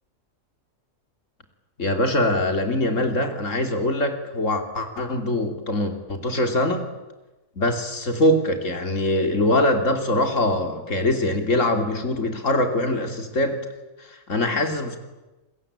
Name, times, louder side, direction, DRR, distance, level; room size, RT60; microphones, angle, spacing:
voice 1, 1.8-6.9 7.6-13.6 14.0-15.0, left 1 dB, 65° left, 6 dB, 3.2 m, -23 dB
28.0 x 21.0 x 8.7 m, 1.1 s
omnidirectional pair, 1.4 m